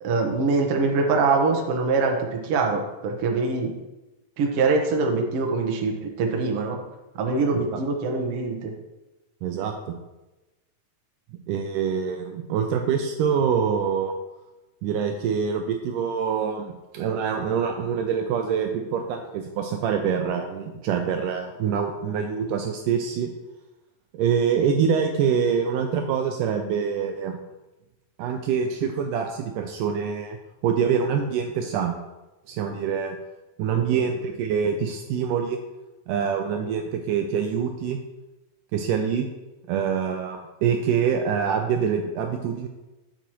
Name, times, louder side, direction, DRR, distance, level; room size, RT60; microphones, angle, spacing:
voice 1, 0.0-3.7 4.4-6.8 7.2-8.7 33.7-33.8, right 4 dB, 65° right, 2 dB, 1.5 m, -23 dB
voice 2, 9.4-10.0 11.5-14.1 14.8-23.3 24.1-27.4 28.2-30.4 30.6-32.0 32.5-33.2 33.6-35.6 36.1-38.0 38.7-39.3 39.7-42.7, right 7 dB, 80° right, 4 dB, 2.0 m, -25 dB
8.8 x 8.0 x 3.0 m, 1.0 s
omnidirectional pair, 4.1 m